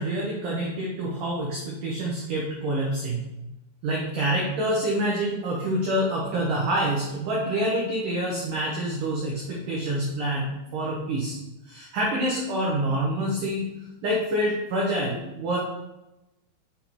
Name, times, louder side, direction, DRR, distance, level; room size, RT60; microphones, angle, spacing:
voice 1, 0.0-3.3 3.8-11.4 11.7-13.7 14.0-15.6, right 1 dB, 90° right, -3 dB, 1.8 m, -27 dB
7.0 x 4.2 x 4.4 m, 0.96 s
omnidirectional pair, 5.3 m